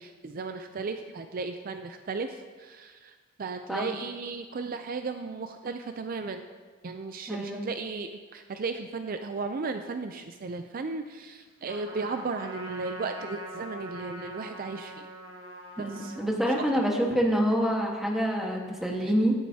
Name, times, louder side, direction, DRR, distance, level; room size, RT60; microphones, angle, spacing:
voice 1, 0.0-6.4 6.8-15.1 15.8-16.5 19.0-19.1, right 4 dB, 45° right, 7 dB, 0.4 m, -35 dB
voice 2, 7.3-7.7 15.8-19.3, equal, ahead, -1 dB, 1.4 m, -26 dB
Trumpet, 11.7-16.3, right 1 dB, 75° right, 1.6 m, -43 dB
14.0 x 10.5 x 2.8 m, 1.5 s
head